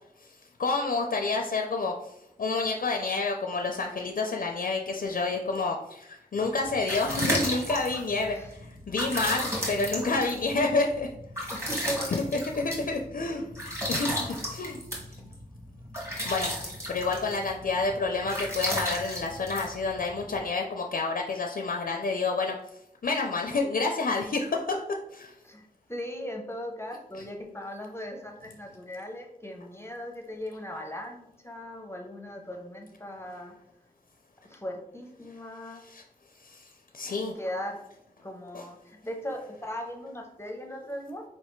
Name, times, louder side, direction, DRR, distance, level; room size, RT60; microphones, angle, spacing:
voice 1, 0.2-11.1 12.1-13.5 13.9-14.8 16.2-22.6 23.0-25.4 35.8-36.0 36.4-37.3 38.5-38.6, left 3 dB, 70° left, 2 dB, 0.4 m, -29 dB
sound 1, 6.4-20.4, equal, 20° right, 1.5 m, -34 dB
voice 2, 11.5-12.1 14.3-14.5 25.4-33.5 34.5-35.8 37.3-37.8 38.2-41.2, equal, 15° left, 2 dB, 0.6 m, -38 dB
4.3 x 3.2 x 3.0 m, 0.82 s
wide cardioid pair, 65°, 15 cm